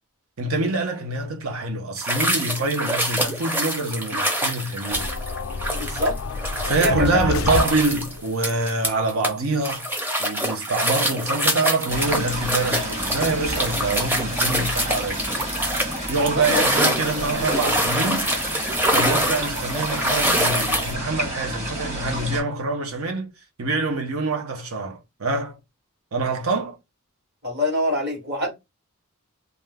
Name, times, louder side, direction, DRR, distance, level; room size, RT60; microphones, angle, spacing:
voice 1, 0.4-5.1 6.7-9.9 10.2-15.2 16.1-18.3 18.9-23.3 23.6-25.6 26.1-26.8, right 3 dB, 70° right, 0.7 m, -25 dB
sound 1, 2.0-9.3 9.6-20.9, equal, 10° right, 0.6 m, -25 dB
sound 2, 4.9-8.3, left 4 dB, 65° left, 0.3 m, -29 dB
voice 2, 5.7-6.1 6.6-7.2 7.5-7.6 16.3-17.8 27.4-28.5, left 1 dB, 50° right, 1.2 m, -26 dB
sound 3, 11.9-22.4, right 1 dB, 30° right, 1.2 m, -31 dB
2.5 x 2.3 x 3.3 m
head